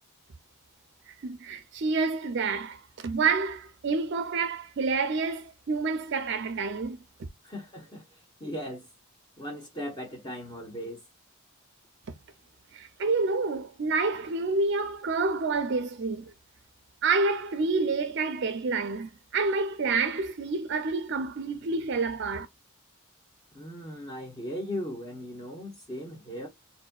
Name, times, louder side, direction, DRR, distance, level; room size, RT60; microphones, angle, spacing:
voice 1, 1.1-7.0 12.7-16.3 17.0-22.5, right 4 dB, 55° right, 0.4 m, -28 dB
voice 2, 7.4-8.9 9.4-11.0 23.5-26.5, equal, 20° left, 0.9 m, -38 dB
4.2 x 2.6 x 2.2 m
head